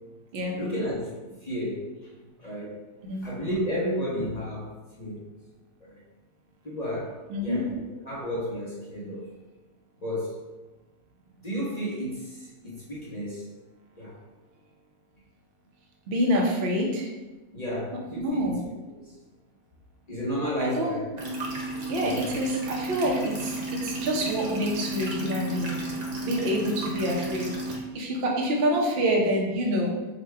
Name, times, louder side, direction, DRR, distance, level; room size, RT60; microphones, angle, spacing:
voice 1, 0.6-1.8 2.4-2.8 3.2-4.7 5.0-5.2 5.8-5.9 6.6-7.1 7.4-9.2 10.0-10.3 11.4-13.4 14.0-14.1 17.5-18.5 18.9-19.2 20.1-21.0 22.0-22.3, equal, 40° left, -7 dB, 0.6 m, -32 dB
voice 2, 7.3-7.6 16.1-17.1 18.2-18.6 20.6-21.0 21.9-25.8 26.2-29.9, equal, 55° right, 0 dB, 0.7 m, -27 dB
sound 1, 21.2-27.8, right 2 dB, 90° right, 0.3 m, -33 dB
4.0 x 2.2 x 4.6 m, 1.2 s
omnidirectional pair, 1.7 m